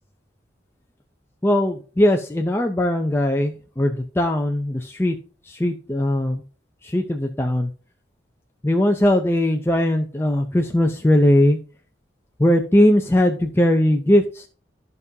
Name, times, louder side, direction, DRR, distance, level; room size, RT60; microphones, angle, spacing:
voice 1, 1.4-5.2 5.5-6.4 6.8-7.7 8.6-11.6 12.4-14.5, left 1 dB, 15° left, 3 dB, 0.5 m, -19 dB
13.5 x 5.4 x 2.7 m, 0.38 s
head